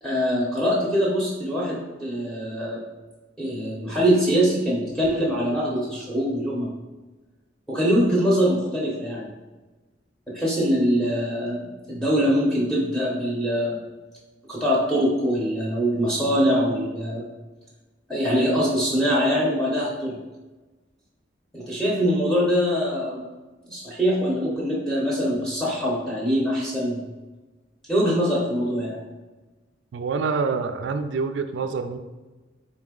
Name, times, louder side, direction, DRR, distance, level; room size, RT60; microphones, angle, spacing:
voice 1, 0.0-2.8 3.4-6.7 7.7-9.3 10.3-13.8 14.5-17.2 18.1-20.2 21.5-23.2 23.7-27.0 27.9-29.0, equal, ahead, -6 dB, 0.7 m, -23 dB
voice 2, 29.9-32.1, right 4 dB, 75° right, 9 dB, 0.3 m, -26 dB
3.9 x 2.7 x 3.6 m, 1.2 s
head